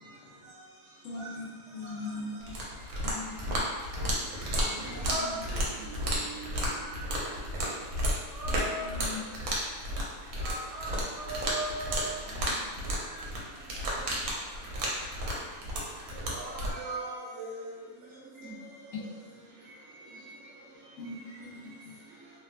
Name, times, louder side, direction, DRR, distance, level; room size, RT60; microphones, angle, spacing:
voice 1, 1.0-2.6 3.1-3.7 4.7-5.0 8.8-9.2 18.9-19.0 21.0-22.0, left 3 dB, 80° left, -2 dB, 1.0 m, -41 dB
sound 1, 2.4-16.7, equal, 85° right, 1.1 m, -33 dB
voice 2, 4.3-5.9 12.2-12.9 20.0-20.2, right 1 dB, 35° right, -12 dB, 0.5 m, -50 dB
voice 3, 8.3-8.9 10.4-12.1 13.1-13.2 16.3-17.8 18.4-18.5, right 1 dB, 65° right, -6 dB, 0.9 m, -37 dB
2.9 x 2.2 x 2.3 m, 1.3 s
omnidirectional pair, 1.5 m